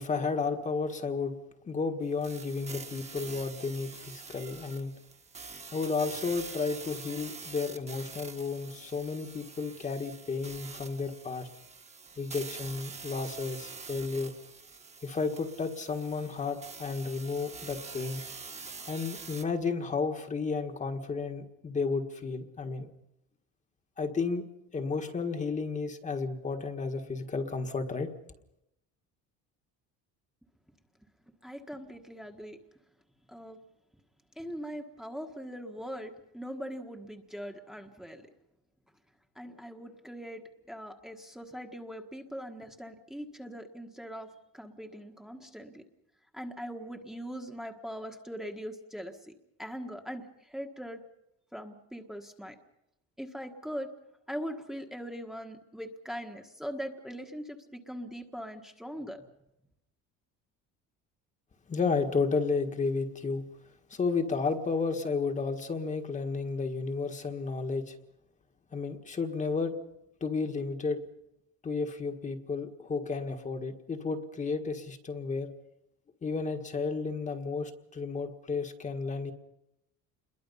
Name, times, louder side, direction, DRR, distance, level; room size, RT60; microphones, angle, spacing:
voice 1, 0.0-1.3 1.6-4.9 5.7-11.5 12.2-14.3 15.0-18.2 18.9-22.9 24.0-24.4 24.7-28.1 61.7-63.5 63.9-68.0 68.7-69.7 70.2-71.0 71.6-75.5 76.2-79.3, left 4 dB, 25° left, 5 dB, 1.6 m, -32 dB
sound 1, 2.2-19.4, right 4 dB, 20° right, 1.6 m, -45 dB
voice 2, 31.4-32.6 33.3-33.6 34.3-38.3 39.3-40.4 40.7-45.8 46.3-49.3 49.6-51.0 51.5-52.6 53.2-53.9 54.3-59.3, equal, ahead, 3 dB, 1.5 m, -41 dB
28.5 x 22.0 x 5.6 m, 0.86 s
cardioid pair, 160°, 33 cm